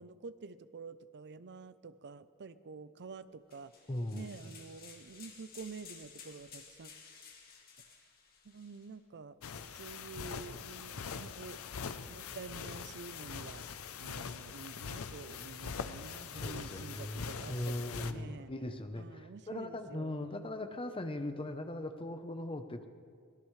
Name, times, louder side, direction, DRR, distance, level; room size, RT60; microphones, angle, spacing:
voice 1, 0.0-3.7 4.1-6.9 8.4-9.4 9.7-11.6 11.9-13.7 14.0-18.5 18.9-20.6, right 4 dB, 50° right, 14 dB, 0.5 m, -48 dB
sound 1, 3.5-8.9, left 6 dB, 45° left, 2.0 m, -55 dB
voice 2, 3.9-4.3 16.2-22.9, left 1 dB, 25° left, 8 dB, 0.8 m, -39 dB
sound 2, 9.4-18.1, left 6 dB, 65° left, 0.6 m, -43 dB
24.0 x 17.5 x 3.2 m, 2.2 s
head